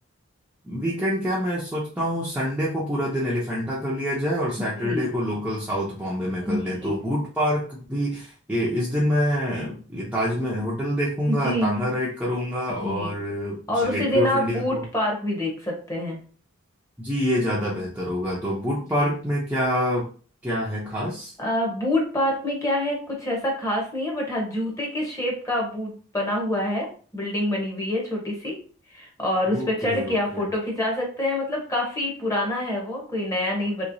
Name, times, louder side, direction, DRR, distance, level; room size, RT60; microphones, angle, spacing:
voice 1, 0.6-14.8 17.0-20.1 20.4-21.3 29.5-30.5, equal, 5° right, -6 dB, 0.5 m, -26 dB
voice 2, 6.5-7.0 11.3-11.7 12.8-13.1 13.7-16.2 18.9-19.1 21.4-28.6 28.9-33.8, left 1 dB, 15° left, -1 dB, 0.9 m, -26 dB
3.1 x 3.0 x 2.6 m, 0.40 s
head